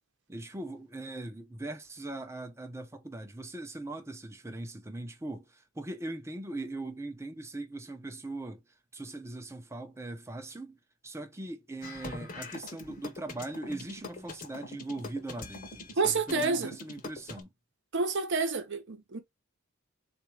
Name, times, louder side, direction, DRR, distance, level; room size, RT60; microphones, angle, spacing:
voice 1, 0.3-8.6 8.9-17.5, right 2 dB, 15° right, 0.6 m, -40 dB
sound 1, 11.8-17.4, left 3 dB, 40° left, 0.9 m, -43 dB
voice 2, 16.0-16.7 17.9-19.2, right 4 dB, 55° right, 0.9 m, -29 dB
3.9 x 2.5 x 4.6 m
head